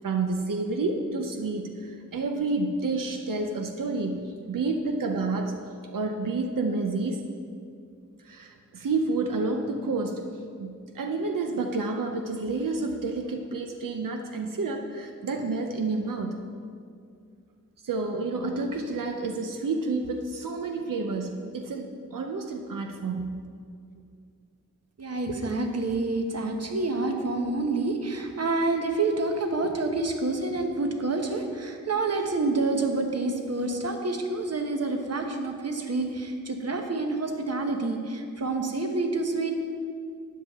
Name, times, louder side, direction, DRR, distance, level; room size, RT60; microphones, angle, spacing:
voice 1, 0.0-5.7 5.9-7.2 8.2-10.2 10.6-16.4 17.8-23.5, right 3 dB, 90° right, 4 dB, 0.7 m, -29 dB
voice 2, 25.0-39.5, right 3 dB, 50° right, 4 dB, 1.1 m, -28 dB
12.5 x 9.4 x 3.6 m, 2.3 s
wide cardioid pair, 85°, 32 cm